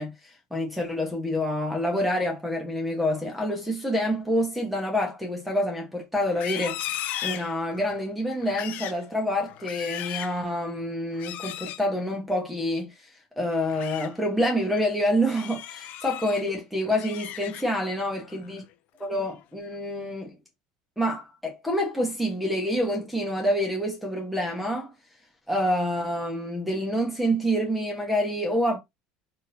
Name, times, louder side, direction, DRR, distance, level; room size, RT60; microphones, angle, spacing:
voice 1, 0.0-6.8 7.2-12.9 13.4-18.6 19.0-20.3 21.0-24.9 25.5-28.8, equal, ahead, 1.1 m, -27 dB
Livestock farm animals working animals, 6.3-7.9 8.4-9.0 9.5-10.4 11.1-11.8 13.5-14.1 14.5-14.8 15.3-16.4 16.8-17.9 18.2-18.6 19.0-19.4, left 12 dB, 55° left, 0.5 m, -36 dB
3.8 x 2.7 x 2.6 m
supercardioid pair, 115°, 3 cm